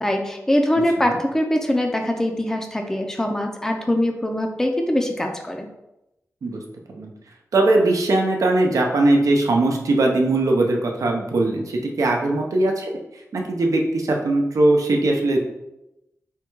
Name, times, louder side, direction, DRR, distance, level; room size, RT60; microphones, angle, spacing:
voice 1, 0.0-5.7, left 1 dB, 10° left, 3 dB, 0.5 m, -22 dB
voice 2, 7.5-13.0 13.3-15.4, right 2 dB, 75° right, 1 dB, 0.7 m, -20 dB
3.7 x 2.3 x 4.5 m, 0.91 s
wide cardioid pair, 80°, 6 cm